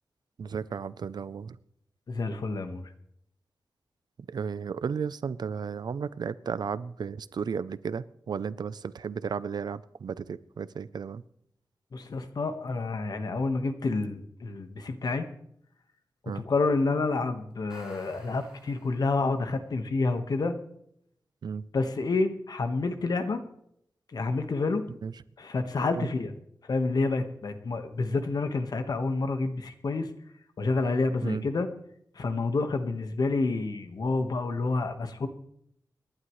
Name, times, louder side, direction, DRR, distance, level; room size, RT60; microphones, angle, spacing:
voice 1, 0.4-1.6 4.2-11.2 16.3-16.4 21.4-21.7 25.0-25.1 26.0-26.1 31.2-31.5, right 6 dB, 80° right, 17 dB, 0.6 m, -34 dB
voice 2, 2.1-2.8 11.9-15.2 16.2-20.5 21.7-23.4 24.1-24.9 25.4-26.3 26.6-30.1 30.6-31.7 32.1-35.3, left 3 dB, 70° left, 8 dB, 1.5 m, -28 dB
sound 1, 17.5-19.5, right 1 dB, 10° right, 4.8 m, -53 dB
28.0 x 11.5 x 3.2 m, 0.72 s
wide cardioid pair, 120°, 7 cm